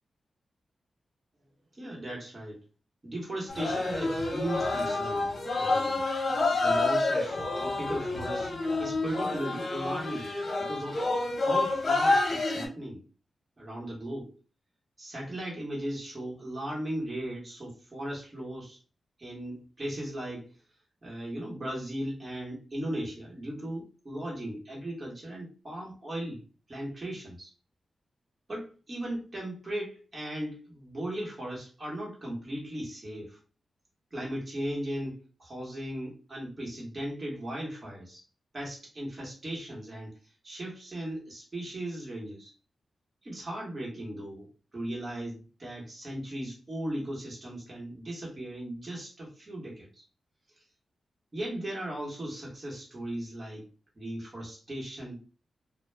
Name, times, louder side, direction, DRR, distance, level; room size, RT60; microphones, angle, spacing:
voice 1, 1.8-2.6 3.0-6.1 6.6-10.3 10.6-11.1 11.4-13.0 13.6-14.4 15.0-18.8 19.2-20.6 21.0-26.4 26.7-27.5 28.5-33.4 34.1-38.2 38.5-42.5 43.2-50.0 51.3-53.7 54.0-55.2, right 1 dB, 35° right, -3 dB, 1.0 m, -37 dB
sound 1, 3.5-12.7, left 2 dB, 50° left, 0.8 m, -28 dB
2.2 x 2.0 x 3.2 m, 0.35 s
cardioid pair, 90°, 0 cm